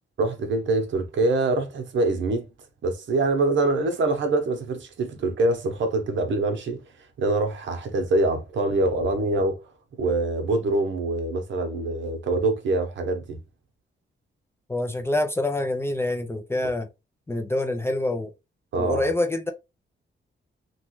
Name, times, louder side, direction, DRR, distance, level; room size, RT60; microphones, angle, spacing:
voice 1, 0.2-2.5 2.8-6.8 7.2-9.6 10.0-13.4 18.7-19.1, right 2 dB, 75° right, 0.8 m, -24 dB
voice 2, 14.7-16.9 17.3-18.3 18.8-19.5, left 1 dB, 15° left, 0.3 m, -26 dB
3.0 x 2.3 x 3.0 m
wide cardioid pair, 160°, 20 cm